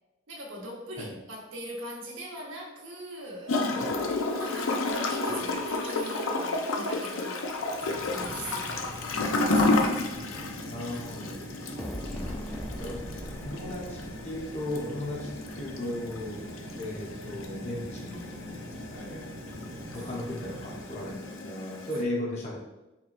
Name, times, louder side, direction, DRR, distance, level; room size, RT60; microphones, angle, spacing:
voice 1, 0.3-3.6 4.4-9.9 12.1-12.4 19.9-20.8, right 1 dB, 75° right, -2 dB, 1.0 m, -42 dB
Gurgling / Toilet flush, 3.5-22.0, left 2 dB, 90° left, 0.5 m, -32 dB
sound 1, 7.6-21.4, right 1 dB, 40° right, 0.6 m, -44 dB
voice 2, 10.7-11.6 12.0-12.1 12.8-13.1 13.4-16.4 16.8-22.6, left 1 dB, 35° left, -3 dB, 0.8 m, -36 dB
sound 2, 11.8-15.4, equal, 5° left, 0.3 m, -40 dB
4.4 x 3.3 x 2.5 m, 1.0 s
head